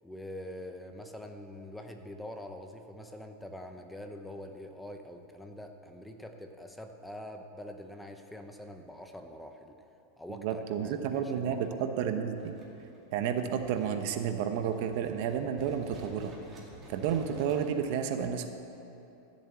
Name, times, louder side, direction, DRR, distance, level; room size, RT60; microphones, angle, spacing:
voice 1, 0.0-9.8 10.2-11.9, left 1 dB, 5° left, 5 dB, 0.7 m, -45 dB
voice 2, 10.3-12.6 13.1-16.3 16.9-18.5, right 8 dB, 50° right, 7 dB, 0.9 m, -31 dB
sound 1, 12.4-17.7, right 2 dB, 20° right, 2.2 m, -52 dB
13.5 x 7.4 x 8.2 m, 2.9 s
supercardioid pair, 160°, 0 cm